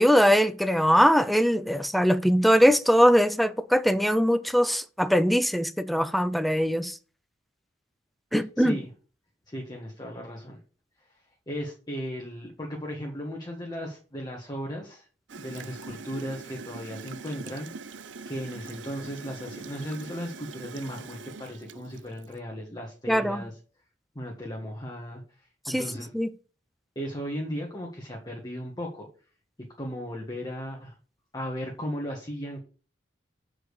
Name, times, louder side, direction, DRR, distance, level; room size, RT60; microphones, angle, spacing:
voice 1, 0.0-7.0 8.3-8.8 23.1-23.4 25.7-25.8 26.1-26.3, equal, ahead, 0.5 m, -21 dB
voice 2, 8.6-8.9 9.5-10.6 11.5-17.7 18.2-23.5 24.1-26.1 26.9-29.1 29.8-30.9 31.3-32.6, equal, 25° left, 1.6 m, -36 dB
Gurgling / Toilet flush, 15.3-22.4, right 4 dB, 80° right, 0.6 m, -43 dB
7.5 x 5.1 x 6.5 m
head